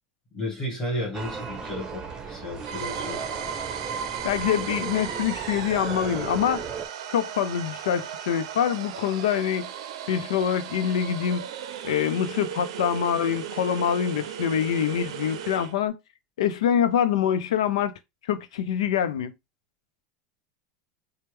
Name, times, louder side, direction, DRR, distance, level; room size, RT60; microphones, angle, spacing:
voice 1, 0.3-3.2, equal, 20° left, 2.3 m, -33 dB
sound 1, 1.1-6.9, right 5 dB, 20° right, 1.0 m, -36 dB
sound 2, 2.6-15.8, right 9 dB, 75° right, 0.5 m, -36 dB
voice 2, 4.2-6.7 7.1-9.7 10.1-11.5 11.8-15.9 16.4-17.9 18.3-19.3, left 9 dB, 85° left, 0.6 m, -25 dB
4.3 x 2.2 x 3.4 m
supercardioid pair, 105°, 3 cm